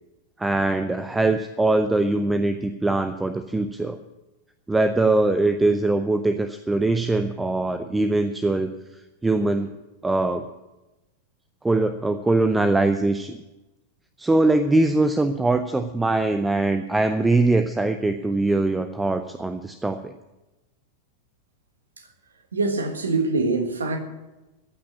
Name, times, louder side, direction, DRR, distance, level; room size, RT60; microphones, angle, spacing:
voice 1, 0.4-4.0 4.7-8.7 9.2-9.7 10.0-10.4 11.6-13.4 14.2-20.1, right 2 dB, 10° right, 0.6 m, -22 dB
voice 2, 22.5-24.0, right 3 dB, 70° right, 1.5 m, -24 dB
14.5 x 6.1 x 9.6 m
figure-of-eight pair, 90°, 0 cm